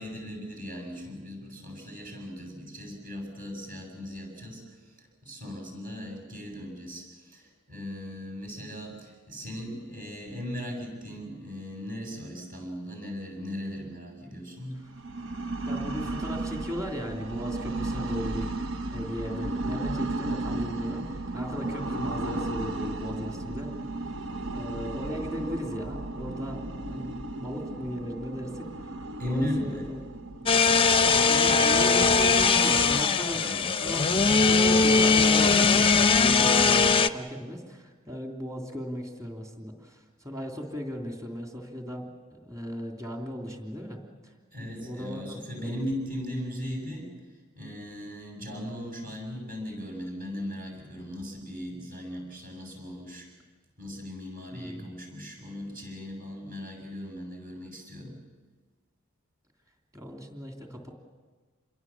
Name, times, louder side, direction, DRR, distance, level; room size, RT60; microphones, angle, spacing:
voice 1, 0.0-14.9 29.2-29.9 32.0-32.3 33.3-33.6 44.5-47.1 47.6-53.3 53.8-58.2, equal, 40° right, 2 dB, 7.3 m, -38 dB
sound 1, 14.9-33.6, right 2 dB, 65° right, 1.0 m, -35 dB
voice 2, 15.7-18.5 18.9-23.7 24.5-28.9 29.2-30.4 31.0-33.4 33.8-44.3 44.7-45.8 54.5-54.9 59.9-60.9, equal, 15° right, 1 dB, 3.0 m, -37 dB
sound 2, 30.5-37.1, left 4 dB, 25° left, 0.7 m, -20 dB
27.5 x 22.0 x 7.3 m, 1.4 s
head